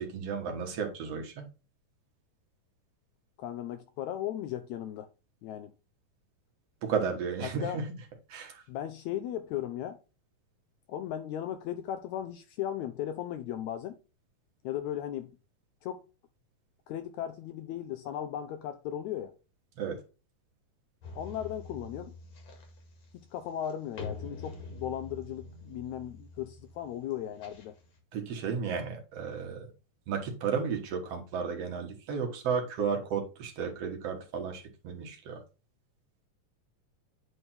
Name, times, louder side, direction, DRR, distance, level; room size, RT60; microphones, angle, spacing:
voice 1, 0.0-1.5 6.8-7.8 8.3-8.6 19.8-20.0 28.1-29.7 30.1-35.4, right 6 dB, 60° right, 2.0 m, -33 dB
voice 2, 3.4-5.1 5.4-5.7 7.6-7.8 8.7-10.0 10.9-14.0 14.6-15.3 15.8-16.0 16.9-19.3 21.1-22.1 23.3-27.7, left 11 dB, 80° left, 1.7 m, -36 dB
sound 1, 21.0-28.0, left 3 dB, 55° left, 2.9 m, -45 dB
8.9 x 3.3 x 4.2 m
omnidirectional pair, 3.7 m